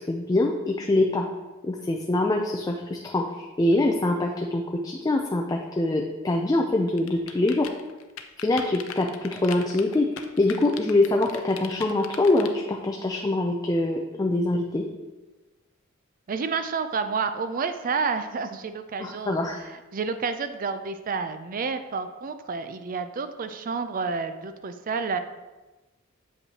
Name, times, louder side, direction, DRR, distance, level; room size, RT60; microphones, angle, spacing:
voice 1, 0.1-1.3 1.6-7.7 8.4-14.9 19.0-19.6, left 2 dB, 20° left, 1 dB, 0.4 m, -24 dB
sound 1, 6.9-12.5, left 8 dB, 85° left, 0.6 m, -39 dB
voice 2, 16.3-19.4 19.6-25.2, right 5 dB, 40° right, 9 dB, 0.4 m, -30 dB
7.8 x 5.4 x 2.8 m, 1.2 s
head